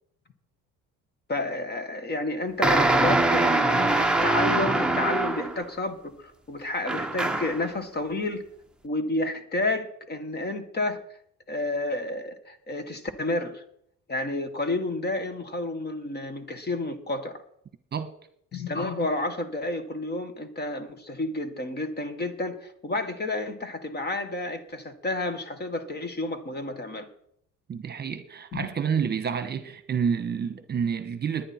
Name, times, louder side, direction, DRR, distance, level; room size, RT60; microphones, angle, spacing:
voice 1, 1.3-8.4 8.8-11.0 11.5-13.6 14.1-17.4 18.5-27.1 28.5-28.7, left 2 dB, 30° left, 1.7 m, -30 dB
sound 1, 2.6-5.6 6.9-7.7, right 2 dB, 5° right, 0.9 m, -23 dB
voice 2, 27.7-31.4, right 7 dB, 30° right, 1.2 m, -29 dB
20.0 x 10.0 x 4.4 m
cardioid pair, 120°, 32 cm